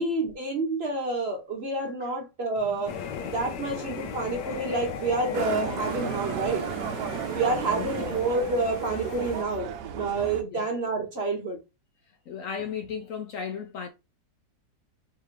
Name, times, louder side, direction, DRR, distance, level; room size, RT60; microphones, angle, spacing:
voice 1, 0.0-2.9 3.2-6.7 7.3-11.6, right 3 dB, 45° right, 0.9 m, -28 dB
sound 1, 2.6-8.5, equal, 5° right, 1.0 m, -48 dB
sound 2, 2.9-9.4, left 7 dB, 85° left, 1.3 m, -37 dB
Motorcycle, 5.3-10.4, right 10 dB, 80° right, 1.2 m, -34 dB
voice 2, 7.7-8.2 10.5-10.6 12.3-13.9, left 7 dB, 65° left, 0.9 m, -35 dB
3.8 x 3.2 x 3.1 m
omnidirectional pair, 1.8 m